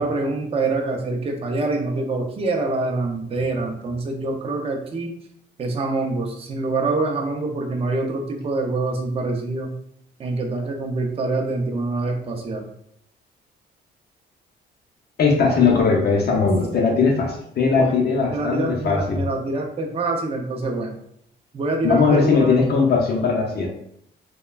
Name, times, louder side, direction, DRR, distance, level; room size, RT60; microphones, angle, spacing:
voice 1, 0.0-5.1 5.6-9.7 10.2-12.6 17.8-17.9 18.3-21.0 21.5-22.5, right 3 dB, 30° right, 2 dB, 0.5 m, -25 dB
voice 2, 15.2-19.3 21.8-23.7, left 4 dB, 55° left, 0 dB, 0.6 m, -19 dB
3.1 x 2.1 x 2.3 m, 0.71 s
cardioid pair, 90°, 20 cm